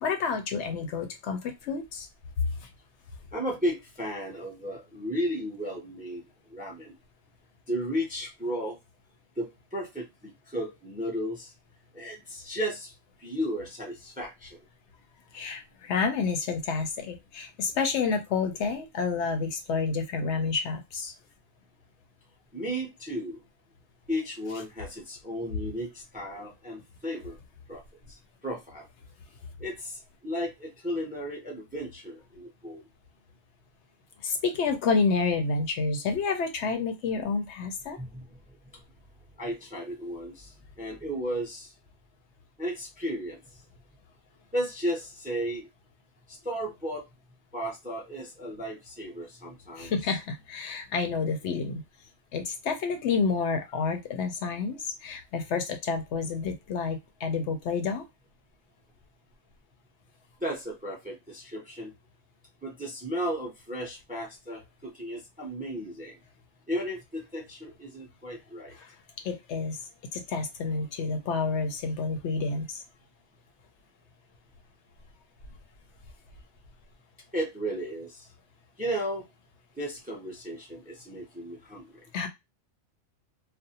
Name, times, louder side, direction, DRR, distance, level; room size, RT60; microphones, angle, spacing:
voice 1, 0.0-2.1 2.6-2.7 15.3-21.1 34.2-38.0 49.8-51.8 52.3-58.0 68.7-68.9 69.2-69.8 70.1-72.8 82.1-82.3, left 4 dB, 70° left, 6 dB, 0.8 m, -29 dB
voice 2, 3.3-6.2 6.5-7.0 7.7-8.8 9.4-11.5 11.9-12.9 13.2-14.6 22.5-23.4 24.1-27.4 27.7-27.8 28.1-28.9 29.6-32.8 38.0-38.2 39.4-41.7 42.6-43.4 44.5-45.7 46.3-47.1 47.5-49.9 60.4-61.9 62.6-66.2 66.7-68.7 77.3-78.3 78.8-79.2 79.8-82.0, equal, 10° right, 1 dB, 0.5 m, -34 dB
2.4 x 2.1 x 2.7 m, 0.21 s
omnidirectional pair, 1.3 m